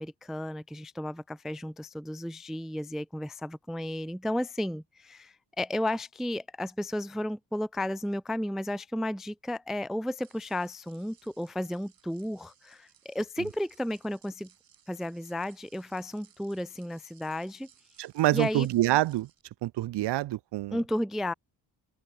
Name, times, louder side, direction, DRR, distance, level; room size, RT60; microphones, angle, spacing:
voice 1, 0.0-14.5 14.9-17.7 18.3-18.7 20.7-21.3, left 1 dB, ahead, 0.4 m, -33 dB
sound 1, 10.1-19.4, right 9 dB, 55° right, 3.3 m, -62 dB
voice 2, 18.0-19.3 19.6-20.8, right 16 dB, 75° right, 0.7 m, -26 dB
open air
cardioid pair, 115°, 41 cm